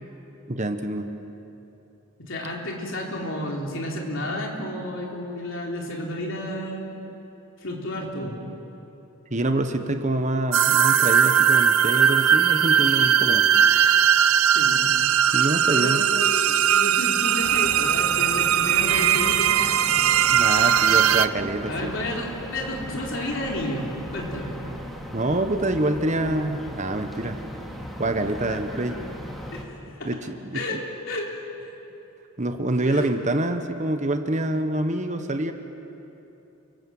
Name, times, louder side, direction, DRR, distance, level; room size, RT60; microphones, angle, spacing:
voice 1, 0.5-1.1 9.3-13.5 15.3-16.0 20.3-21.9 25.1-27.4 28.0-29.0 30.0-30.8 32.4-35.5, right 1 dB, 35° right, 7 dB, 1.2 m, -26 dB
voice 2, 2.2-6.8 7.6-8.4 14.5-14.9 15.7-19.5 21.7-24.6 29.5-30.1 30.5-31.7 32.9-33.0, left 1 dB, 60° left, -1 dB, 4.0 m, -31 dB
sound 1, 10.5-21.3, right 8 dB, 80° right, 0.7 m, -19 dB
sound 2, 17.4-29.6, equal, ahead, 2.4 m, -37 dB
29.5 x 19.5 x 7.9 m, 3.0 s
head